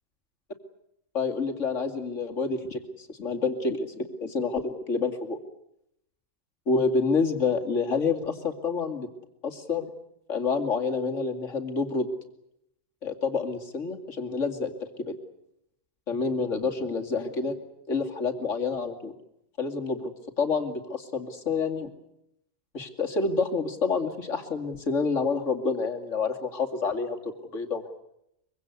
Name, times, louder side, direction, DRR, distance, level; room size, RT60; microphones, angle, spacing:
voice 1, 1.1-5.4 6.7-9.1 9.4-9.9 10.3-12.1 13.0-14.7 15.1-15.2 16.1-17.6 17.9-19.1 19.6-21.9 22.7-27.9, left 4 dB, 60° left, 4 dB, 2.7 m, -28 dB
24.0 x 23.5 x 8.2 m, 0.79 s
omnidirectional pair, 1.4 m